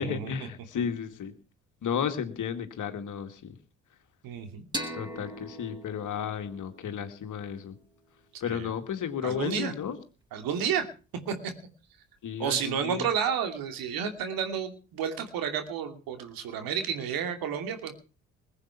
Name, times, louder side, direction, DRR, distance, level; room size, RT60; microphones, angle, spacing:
voice 1, 0.0-1.3 1.8-3.6 4.9-7.7 8.4-10.0 12.2-13.1, left 7 dB, 55° left, 8 dB, 2.4 m, -33 dB
voice 2, 4.2-4.6 8.4-8.7 9.2-9.7 10.3-10.9 11.3-11.5 12.4-17.9, right 7 dB, 65° right, 7 dB, 2.8 m, -31 dB
sound 1, 4.7-8.1, equal, 10° right, 5.1 m, -41 dB
21.0 x 8.5 x 5.9 m, 0.36 s
hypercardioid pair, 50°, 37 cm